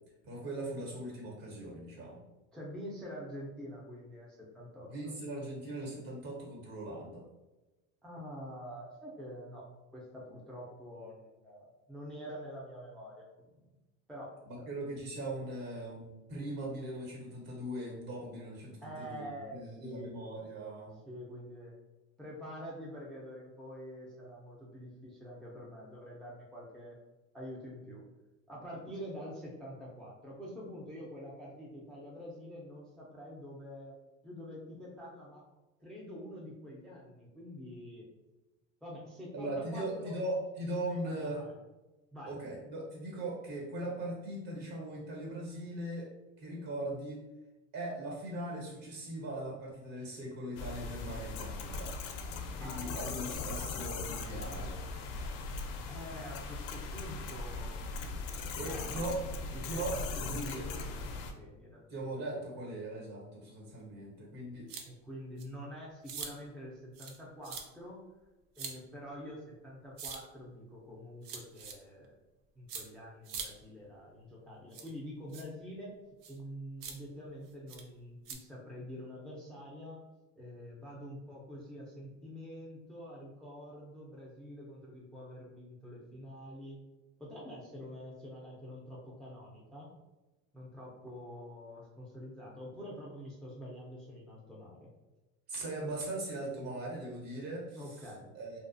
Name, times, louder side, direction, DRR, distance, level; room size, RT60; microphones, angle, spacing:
voice 1, 0.2-2.2 4.9-7.2 14.5-20.9 39.3-41.4 42.3-46.1 46.4-47.2 47.7-51.9 52.6-54.7 58.6-59.2 59.6-60.6 61.9-64.7 95.5-97.8 98.3-98.6, right 1 dB, 60° right, -3 dB, 1.3 m, -39 dB
voice 2, 2.5-5.1 8.0-9.7 9.9-13.6 14.1-14.7 18.8-20.1 21.1-21.7 22.2-27.0 27.3-28.0 28.5-33.9 34.2-35.4 35.8-38.1 38.8-40.2 40.8-41.5 42.1-42.4 52.6-53.8 54.3-55.4 55.9-57.9 58.6-59.1 59.5-62.2 64.9-68.0 68.6-72.2 72.6-75.9 76.3-80.0 80.4-86.8 87.2-89.9 90.5-94.9 97.7-98.3, equal, ahead, -4 dB, 0.4 m, -46 dB
sound 1, 50.6-61.3, left 3 dB, 70° left, 0.5 m, -39 dB
sound 2, 64.7-64.8 65.4-65.5 66.0-66.3 66.9-67.2 67.4-67.6 68.5-68.7 70.0-70.2 71.2-71.7 72.7-72.8 73.2-73.5 74.7-74.9 75.3-75.4 76.2-76.4 76.8-76.9 77.7-77.8 78.2-78.3, right 6 dB, 80° right, 0.6 m, -42 dB
2.4 x 2.3 x 2.5 m, 1.1 s
supercardioid pair, 110°, 40 cm